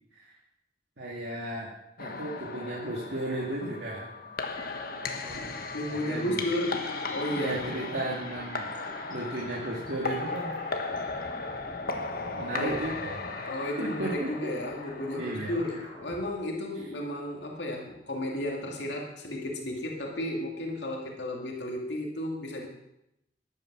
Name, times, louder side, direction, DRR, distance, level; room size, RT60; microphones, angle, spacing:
voice 1, 1.0-1.7 2.0-4.1 5.2-6.4 7.3-8.7 9.1-10.6 11.0-11.1 12.3-14.5 15.1-15.6, right 1 dB, 75° right, -4 dB, 2.3 m, -35 dB
sound 1, 2.0-15.9, left 3 dB, 55° left, 1.4 m, -37 dB
sound 2, 3.0-16.3, left 1 dB, 30° left, 5.4 m, -47 dB
voice 2, 5.7-7.6 12.5-12.7 13.4-22.7, left 1 dB, 75° left, 0 dB, 2.4 m, -33 dB
14.5 x 11.0 x 6.1 m, 0.85 s
head